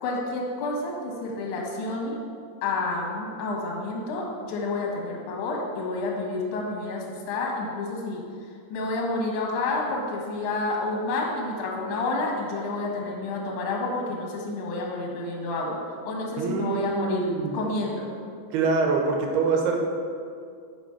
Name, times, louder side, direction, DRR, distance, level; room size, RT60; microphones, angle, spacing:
voice 1, 0.0-2.2 2.6-8.2 8.7-15.8 16.1-17.3 17.5-18.1, left 2 dB, 65° left, -2 dB, 2.0 m, -29 dB
voice 2, 16.4-17.5 18.5-19.8, right 4 dB, 80° right, 1 dB, 2.6 m, -25 dB
6.0 x 5.4 x 5.7 m, 2.3 s
omnidirectional pair, 5.1 m